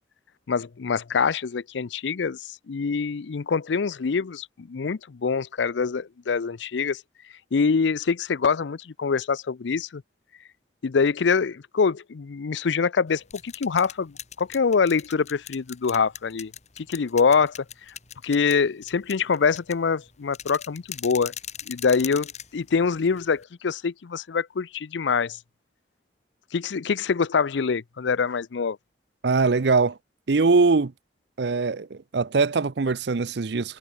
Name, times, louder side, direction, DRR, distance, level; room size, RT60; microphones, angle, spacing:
voice 1, 0.5-7.0 7.5-10.0 10.8-16.5 16.8-17.9 18.2-21.3 21.7-25.4 26.5-28.8, left 5 dB, 80° left, 0.5 m, -25 dB
sound 1, 13.1-23.4, left 9 dB, 40° left, 4.2 m, -41 dB
voice 2, 29.2-30.0 30.3-30.9 31.4-33.8, right 4 dB, 65° right, 0.6 m, -22 dB
head